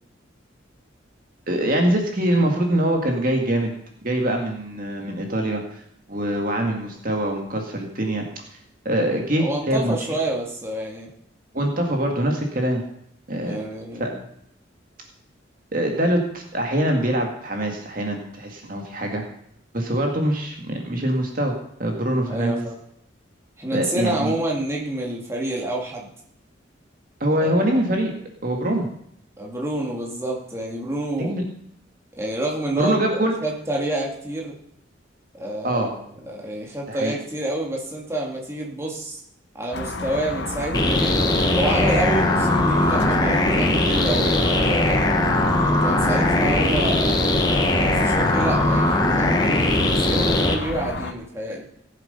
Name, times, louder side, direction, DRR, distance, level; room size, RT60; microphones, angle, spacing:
voice 1, 1.5-3.7 4.0-5.8 6.1-8.6 8.9-9.9 11.5-12.8 13.3-13.6 14.0-14.1 15.7-19.2 19.7-21.5 21.8-22.7 23.7-24.3 27.2-28.1 28.4-28.9 31.2-31.4 32.8-33.3 35.6-35.9 36.9-37.2, right 1 dB, 45° right, 2 dB, 2.0 m, -23 dB
voice 2, 9.4-11.1 13.4-14.2 22.3-22.7 23.6-26.1 27.4-27.6 29.4-31.4 32.2-34.6 35.3-35.9 36.2-39.2 39.5-41.2 41.5-45.3 45.8-47.5 48.0-51.6, right 1 dB, 15° right, -2 dB, 2.4 m, -28 dB
sound 1, 39.7-51.1, left 3 dB, 65° left, 1.1 m, -31 dB
sound 2, 40.7-50.5, left 1 dB, 20° left, 1.3 m, -20 dB
18.0 x 7.6 x 5.5 m, 0.71 s
head